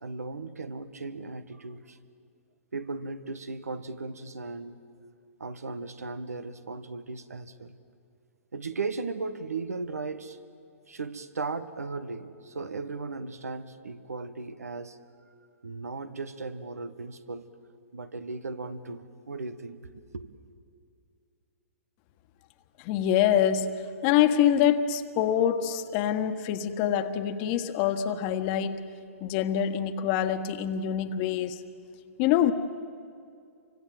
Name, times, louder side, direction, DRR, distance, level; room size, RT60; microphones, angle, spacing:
voice 1, 0.0-2.0 2.7-4.8 5.4-7.8 8.5-10.4 10.9-15.0 15.6-17.4 17.9-20.3, right 3 dB, 90° right, 11 dB, 1.6 m, -37 dB
voice 2, 22.8-28.9 29.2-31.6 32.2-32.5, left 10 dB, 40° left, 9 dB, 1.5 m, -25 dB
29.0 x 25.0 x 7.7 m, 2.4 s
hypercardioid pair, 125°, 8 cm